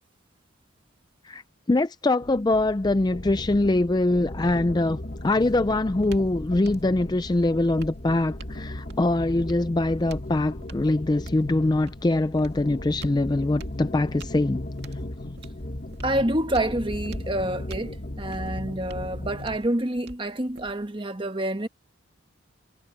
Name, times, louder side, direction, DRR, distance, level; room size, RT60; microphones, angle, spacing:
voice 1, 1.7-5.0 5.2-14.6, left 2 dB, 20° left, 0.4 m, -23 dB
sound 1, 2.2-19.6, left 1 dB, 40° left, 1.3 m, -37 dB
sound 2, 5.0-21.0, right 1 dB, 50° right, 2.7 m, -45 dB
voice 2, 16.0-21.7, right 1 dB, 25° right, 1.3 m, -28 dB
head